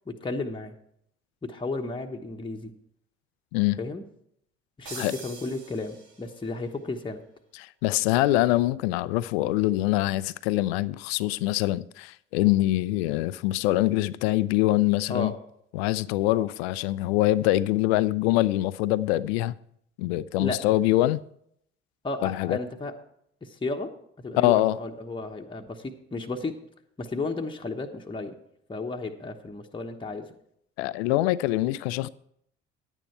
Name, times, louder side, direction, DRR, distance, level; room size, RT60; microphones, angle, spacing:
voice 1, 0.1-0.7 1.4-2.7 3.8-4.0 4.8-7.2 15.1-15.3 16.3-16.5 20.4-20.6 22.0-22.9 23.4-23.9 24.2-26.5 27.0-28.3 28.7-30.3, left 3 dB, 15° left, 1.1 m, -33 dB
sound 1, 4.9-6.5, right 4 dB, 65° right, 2.8 m, -43 dB
voice 2, 7.6-15.3 15.7-19.5 20.0-21.2 22.2-22.6 24.4-24.8 30.8-32.1, left 16 dB, 70° left, 0.5 m, -24 dB
11.0 x 9.1 x 4.5 m
hypercardioid pair, 55°, 33 cm